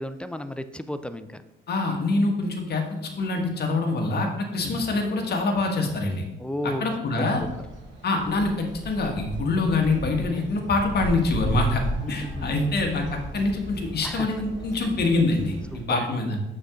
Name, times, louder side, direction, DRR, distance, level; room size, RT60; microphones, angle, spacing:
voice 1, 0.0-1.4 4.6-4.9 6.4-6.9 12.0-12.6 14.0-14.3 16.0-16.1, left 1 dB, 5° left, 11 dB, 0.5 m, -33 dB
voice 2, 1.7-6.2 6.6-7.4 8.0-11.8 12.1-16.4, left 2 dB, 55° left, 2 dB, 1.7 m, -25 dB
sound 1, 7.3-15.8, equal, 70° right, 2.7 m, -35 dB
7.0 x 6.3 x 3.8 m, 0.93 s
cardioid pair, 90°, 20 cm